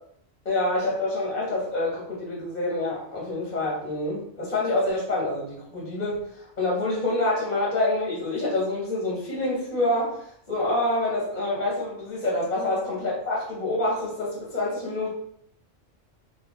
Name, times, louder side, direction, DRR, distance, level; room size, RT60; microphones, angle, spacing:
voice 1, 0.4-15.1, left 2 dB, 45° left, -4 dB, 0.8 m, -27 dB
3.6 x 2.3 x 2.9 m, 0.68 s
omnidirectional pair, 1.2 m